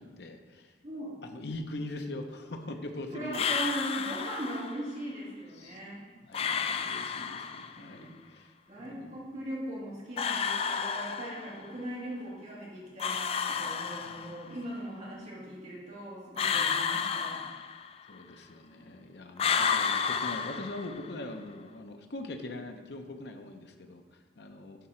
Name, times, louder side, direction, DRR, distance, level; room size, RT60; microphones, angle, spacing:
voice 1, 0.0-0.7 1.2-3.5 5.6-5.8 6.2-9.2 18.1-24.9, left 2 dB, 65° left, 5 dB, 0.7 m, -42 dB
voice 2, 3.1-6.0 6.3-6.6 7.8-8.1 8.7-17.5, right 1 dB, 40° right, -7 dB, 2.8 m, -39 dB
sound 1, 3.3-4.8 6.3-7.8 10.2-11.7 13.0-14.5 16.4-18.1 19.4-21.2, left 6 dB, 35° left, 0.3 m, -31 dB
10.5 x 4.8 x 4.3 m, 1.3 s
head